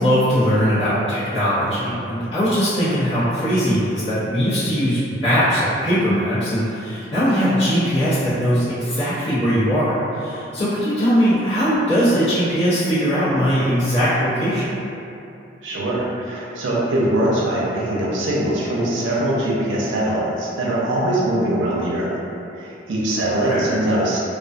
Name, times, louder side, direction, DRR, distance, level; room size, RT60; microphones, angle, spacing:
voice 1, 0.0-14.8 23.5-23.7, equal, 75° left, -17 dB, 0.8 m, -20 dB
voice 2, 15.6-22.2 22.5-24.2, right 1 dB, 80° right, -6 dB, 0.5 m, -22 dB
2.3 x 2.2 x 2.5 m, 2.8 s
head